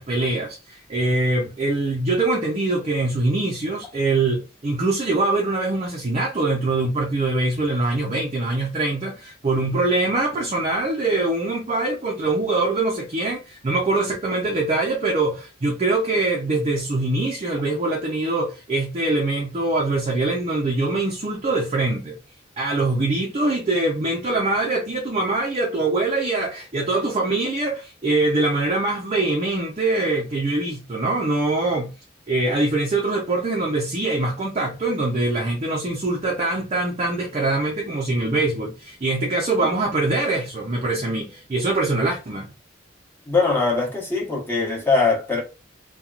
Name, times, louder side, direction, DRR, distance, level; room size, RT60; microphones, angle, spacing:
voice 1, 0.0-22.2 22.6-31.9 32.3-42.5, right 2 dB, 35° right, 0.5 m, -23 dB
voice 2, 43.3-45.4, left 4 dB, 10° left, 0.9 m, -21 dB
2.8 x 2.2 x 2.4 m
head